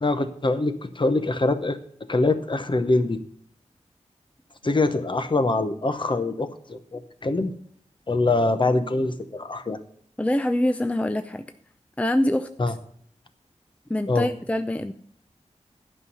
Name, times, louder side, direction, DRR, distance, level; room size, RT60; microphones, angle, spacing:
voice 1, 0.0-1.8 2.1-3.2 4.6-7.5 8.1-9.8 12.6-12.7 14.1-14.3, left 2 dB, 40° left, 9 dB, 0.9 m, -24 dB
voice 2, 10.2-11.4 12.0-12.5 13.9-14.9, left 1 dB, 10° left, 9 dB, 0.4 m, -24 dB
11.0 x 5.6 x 6.8 m, 0.63 s
wide cardioid pair, 80°, 13 cm